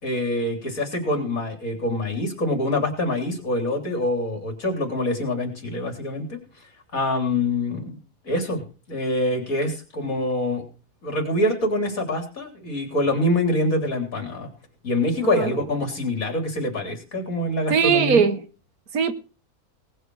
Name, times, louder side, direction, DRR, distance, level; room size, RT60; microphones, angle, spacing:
voice 1, 0.0-6.4 6.9-8.0 8.2-10.6 11.0-14.5 14.8-18.2, left 1 dB, 60° left, 4.0 m, -25 dB
voice 2, 17.7-18.4 18.9-19.1, right 6 dB, 70° right, 1.7 m, -20 dB
19.0 x 6.7 x 6.3 m
omnidirectional pair, 1.6 m